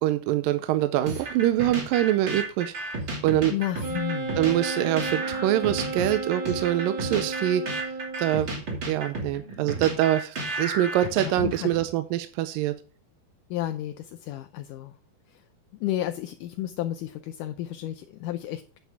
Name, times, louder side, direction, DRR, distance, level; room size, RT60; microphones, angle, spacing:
voice 1, 0.0-2.7 3.2-3.5 4.4-7.6 8.2-12.8, right 13 dB, 80° right, 10 dB, 2.2 m, -24 dB
sound 1, 1.1-11.8, right 2 dB, 35° right, 2.8 m, -33 dB
voice 2, 3.5-4.3 11.4-11.7 13.5-14.9 15.8-18.8, left 13 dB, 80° left, 8 dB, 1.9 m, -32 dB
Wind instrument woodwind instrument, 3.8-8.4, right 3 dB, 50° right, 1.6 m, -33 dB
9.5 x 8.0 x 3.6 m, 0.37 s
omnidirectional pair, 4.3 m